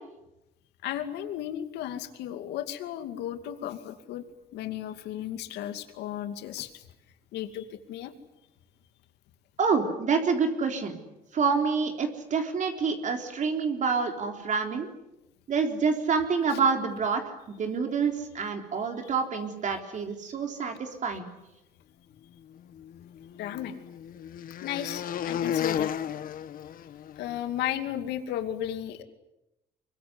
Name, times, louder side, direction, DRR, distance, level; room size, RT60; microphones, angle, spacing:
voice 1, 0.8-4.2 4.5-6.8 7.3-8.1 23.4-23.8 24.6-25.9 27.2-29.0, left 11 dB, 85° left, 8 dB, 2.5 m, -34 dB
voice 2, 9.6-11.0 11.3-14.9 15.5-17.2 17.5-21.3, right 5 dB, 45° right, 4 dB, 3.8 m, -27 dB
sound 1, 22.8-27.4, left 9 dB, 55° left, 1.3 m, -33 dB
24.5 x 23.0 x 9.7 m, 0.92 s
cardioid pair, 110°, 17 cm